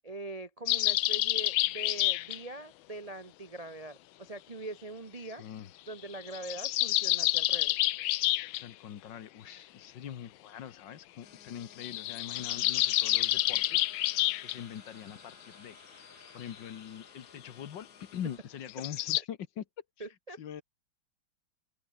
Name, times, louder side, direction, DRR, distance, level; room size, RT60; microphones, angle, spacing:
voice 1, 0.0-5.4 5.9-7.7 19.2-19.3 20.0-20.4, right 2 dB, 30° right, 0.6 m, -43 dB
sound 1, 0.7-2.4 6.1-8.6 11.8-14.6 18.7-19.2, left 16 dB, 85° left, 1.4 m, -28 dB
voice 2, 5.4-5.7 8.5-15.8 16.3-19.6 20.4-20.6, left 9 dB, 65° left, 1.8 m, -43 dB
sound 2, 11.2-18.4, left 6 dB, 50° left, 2.1 m, -59 dB
Tortured Soul, 12.3-18.6, right 1 dB, 10° right, 2.3 m, -59 dB
open air
omnidirectional pair, 2.2 m